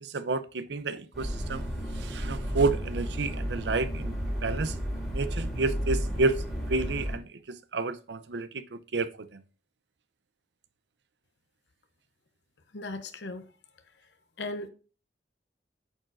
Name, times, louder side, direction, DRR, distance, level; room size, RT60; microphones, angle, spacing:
voice 1, 0.0-1.7 2.0-4.2 4.4-4.7 5.1-6.3 6.7-9.4, right 3 dB, 80° right, 0.6 m, -30 dB
sound 1, 1.1-7.1, equal, ahead, 3.6 m, -32 dB
voice 2, 12.7-13.4 14.4-14.7, left 2 dB, 85° left, 0.8 m, -36 dB
8.6 x 6.4 x 2.5 m
head